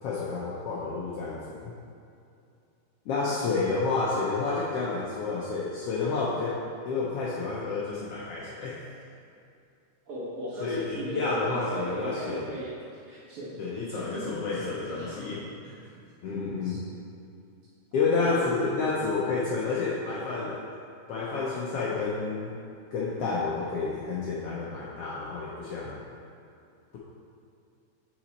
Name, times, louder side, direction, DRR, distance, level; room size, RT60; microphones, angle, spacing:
voice 1, 0.0-1.7 3.1-6.6 6.9-8.8 10.6-12.4 13.6-15.4 16.2-16.8 17.9-20.6 21.1-22.6 22.9-26.0, left 4 dB, 75° left, -6 dB, 1.4 m, -30 dB
voice 2, 10.1-13.6 13.9-15.2 15.6-15.9 16.3-16.4 16.6-16.8 18.2-18.9, right 1 dB, 60° right, -7 dB, 1.7 m, -38 dB
5.9 x 5.2 x 4.1 m, 2.5 s
omnidirectional pair, 3.4 m